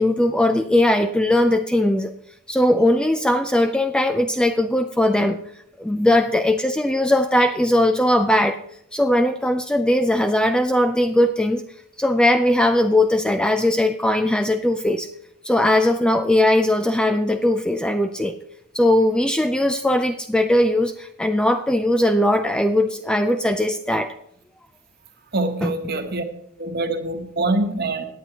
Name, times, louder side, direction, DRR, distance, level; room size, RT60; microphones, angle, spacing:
voice 1, 0.0-2.1 2.5-5.4 5.8-8.6 8.9-11.6 12.0-15.1 15.4-18.4 18.7-24.1 25.6-25.7, left 1 dB, 5° left, 7 dB, 0.3 m, -19 dB
voice 2, 25.3-26.2 26.6-28.1, right 2 dB, 45° right, 6 dB, 1.1 m, -24 dB
17.0 x 9.4 x 2.9 m, 0.73 s
head